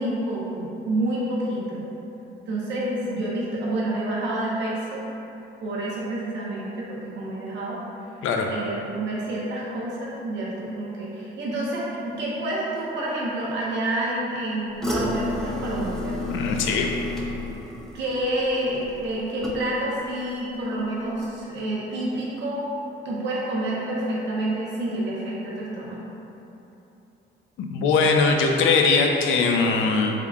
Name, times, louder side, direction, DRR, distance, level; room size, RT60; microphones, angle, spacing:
voice 1, 0.0-1.9 2.5-5.0 5.6-7.8 8.5-16.2 17.9-22.7 23.0-26.1, right 1 dB, 65° right, -5 dB, 0.7 m, -28 dB
sound 1, 14.8-20.0 20.3-20.8 21.2-21.3, left 2 dB, ahead, 0.5 m, -31 dB
voice 2, 16.2-16.9 27.6-30.1, left 4 dB, 80° left, 2 dB, 0.4 m, -21 dB
3.6 x 3.4 x 2.3 m, 3.0 s
cardioid pair, 90°, 20 cm